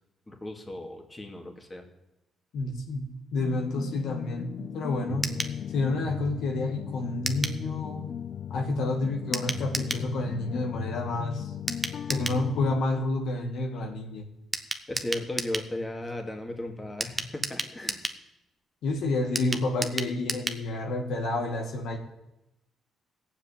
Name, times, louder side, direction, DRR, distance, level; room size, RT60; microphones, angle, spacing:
voice 1, 0.3-1.9 14.9-18.0, left 1 dB, 20° left, 3 dB, 2.3 m, -36 dB
voice 2, 2.5-4.5 4.7-5.4 5.7-8.1 8.5-11.5 12.1-14.3 18.8-22.0, left 2 dB, 75° left, 3 dB, 2.1 m, -29 dB
sound 1, 3.4-12.8, left 9 dB, 60° left, 0.6 m, -36 dB
sound 2, 5.2-5.6 7.3-7.6 9.3-10.1 11.7-12.4 14.5-15.7 17.0-18.2 19.4-20.6 20.9-21.0 21.3-21.4, right 1 dB, 10° right, 1.1 m, -32 dB
15.5 x 7.4 x 9.1 m, 0.92 s
cardioid pair, 90°, 0 cm